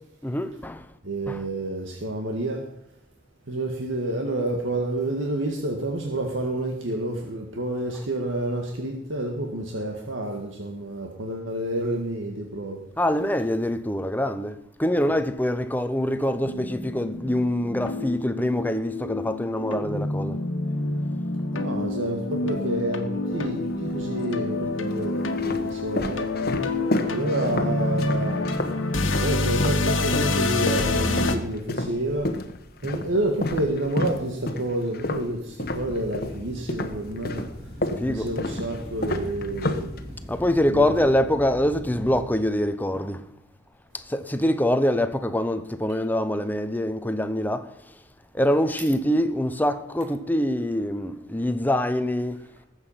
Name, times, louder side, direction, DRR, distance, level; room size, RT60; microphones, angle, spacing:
voice 1, 0.2-0.8 1.3-1.4 13.0-20.4 26.6-26.7 38.0-38.3 40.3-43.2 44.1-47.7 48.3-52.4, left 1 dB, 10° left, 0.8 m, -24 dB
voice 2, 1.0-2.6 3.5-12.8 15.0-15.1 21.5-26.6 27.1-28.5 29.2-32.3 32.8-37.5 38.0-39.9 40.7-40.9, right 1 dB, 80° right, 1.9 m, -29 dB
sound 1, 16.4-31.3, left 2 dB, 90° left, 1.7 m, -27 dB
sound 2, 23.3-24.0 24.7-29.9 30.1-36.4 36.7-40.4, left 1 dB, 50° left, 1.2 m, -30 dB
sound 3, 35.6-42.2, equal, 25° right, 2.3 m, -40 dB
20.0 x 8.2 x 5.8 m
head